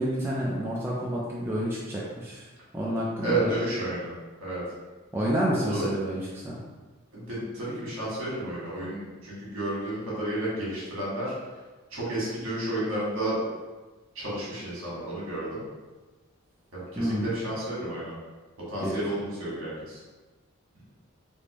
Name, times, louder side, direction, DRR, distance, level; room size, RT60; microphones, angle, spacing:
voice 1, 0.0-2.5 2.7-3.5 5.1-6.6 17.0-17.3 18.8-19.0, equal, 10° right, -6 dB, 0.4 m, -29 dB
voice 2, 3.2-4.1 4.4-4.6 5.6-5.9 7.1-11.3 11.9-13.5 14.1-15.7 16.7-18.1 18.7-20.0, right 1 dB, 70° right, -7 dB, 1.5 m, -31 dB
3.5 x 2.6 x 3.0 m, 1.2 s
head